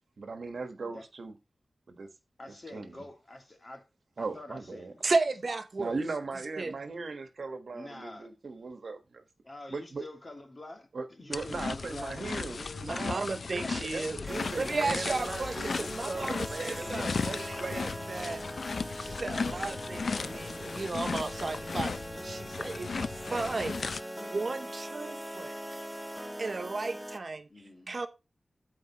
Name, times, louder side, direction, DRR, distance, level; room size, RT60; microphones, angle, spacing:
voice 1, 0.2-1.3 1.9-2.1 2.5-3.0 4.2-4.9 5.8-9.2 9.7-10.0 10.9-17.8 19.9-20.0, right 4 dB, 75° right, 1.3 m, -39 dB
voice 2, 2.4-3.9 4.2-5.1 7.7-8.3 9.4-12.9 13.3-15.2 15.8-15.9 24.2-24.5 27.5-27.9, left 2 dB, 40° left, 2.2 m, -47 dB
voice 3, 5.0-5.9 6.6-6.7 12.8-14.2 14.6-17.1 17.4-18.4 19.0-24.0 24.3-25.6 26.4-27.5 27.9-28.1, right 3 dB, 55° right, 0.8 m, -34 dB
sound 1, 11.3-24.0, left 4 dB, 75° left, 0.5 m, -36 dB
sound 2, 14.3-27.2, equal, 5° right, 0.4 m, -41 dB
13.0 x 4.9 x 2.9 m
wide cardioid pair, 80°, 0 cm